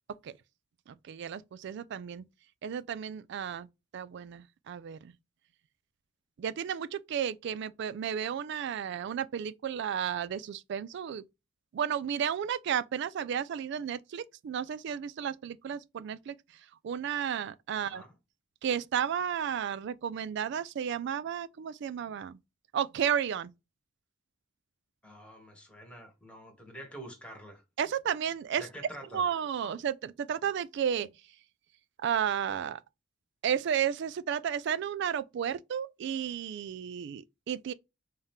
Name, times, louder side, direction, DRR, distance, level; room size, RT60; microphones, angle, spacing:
voice 1, 0.9-2.2 2.6-3.7 3.9-5.1 6.4-11.2 11.7-16.3 16.8-18.0 18.6-22.4 22.7-23.5 27.8-28.6 29.1-31.1 32.0-32.8 33.4-37.7, right 8 dB, 60° right, 0.3 m, -33 dB
voice 2, 17.7-18.1 25.0-27.6 28.6-29.2 29.6-29.7, equal, 5° left, 1.2 m, -47 dB
3.5 x 2.8 x 3.5 m
head